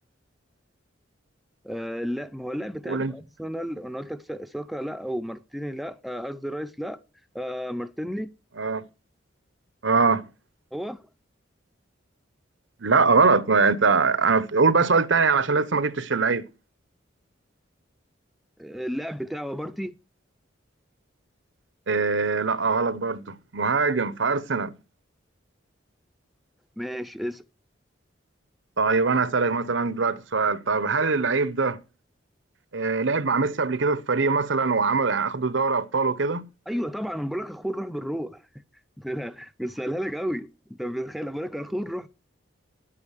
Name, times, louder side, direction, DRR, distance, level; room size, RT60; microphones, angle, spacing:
voice 1, 1.6-7.0 7.3-8.3 10.7-11.0 18.6-19.9 26.8-27.4 36.7-38.4 39.0-42.1, equal, ahead, 0.5 m, -32 dB
voice 2, 9.8-10.2 12.8-16.5 21.9-24.7 28.8-31.8 32.7-36.4, right 4 dB, 70° right, 0.8 m, -22 dB
10.0 x 8.6 x 6.5 m
head